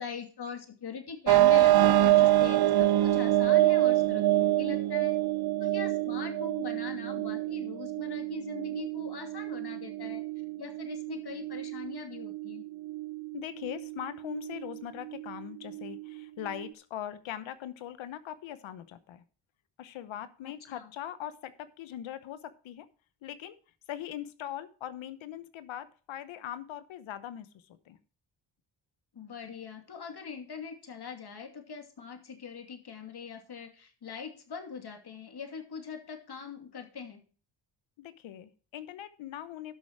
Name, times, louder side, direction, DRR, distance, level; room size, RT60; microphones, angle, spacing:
voice 1, 0.0-5.2 5.6-10.2 10.6-12.6 20.4-20.9 29.1-37.2, left 6 dB, 55° left, 5 dB, 2.6 m, -42 dB
sound 1, 1.3-16.7, right 15 dB, 55° right, 0.6 m, -27 dB
voice 2, 13.3-19.2 19.8-22.9 23.2-23.6 23.9-28.0 38.0-39.7, left 11 dB, 85° left, 13 dB, 1.0 m, -41 dB
12.0 x 6.7 x 4.7 m, 0.39 s
cardioid pair, 60°, 46 cm